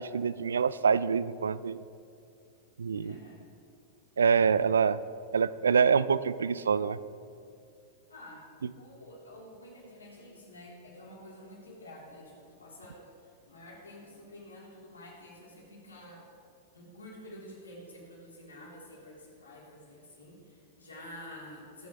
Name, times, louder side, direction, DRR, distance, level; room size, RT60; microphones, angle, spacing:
voice 1, 0.0-1.8 2.8-3.1 4.2-5.0 5.3-7.0, right 6 dB, 75° right, 17 dB, 0.4 m, -25 dB
voice 2, 2.8-3.5 8.1-8.5 8.7-13.0 13.5-16.2 16.7-21.9, left 1 dB, 80° left, -4 dB, 3.7 m, -49 dB
22.0 x 9.2 x 3.4 m, 2.4 s
figure-of-eight pair, 95°, 0 cm